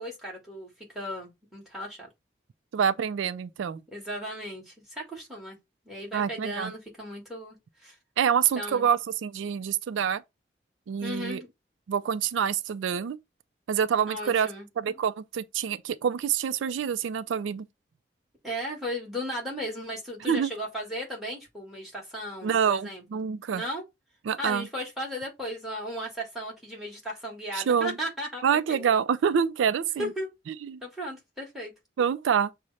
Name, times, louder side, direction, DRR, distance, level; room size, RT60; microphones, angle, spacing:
voice 1, 0.0-2.1 3.9-5.6 5.9-8.0 8.6-8.9 11.0-11.5 14.1-15.0 18.4-23.0 23.5-23.8 24.4-28.4 28.7-29.0 30.0-30.3 30.8-31.7, equal, ahead, 1.7 m, -36 dB
voice 2, 2.7-3.8 6.1-6.7 8.2-10.2 10.9-11.4 11.9-13.2 13.7-14.5 14.8-17.7 20.3-20.5 22.4-23.6 24.3-24.7 27.5-27.9 28.4-30.1 30.7-30.8 32.0-32.5, right 7 dB, 90° right, 0.3 m, -26 dB
6.2 x 2.1 x 4.0 m
head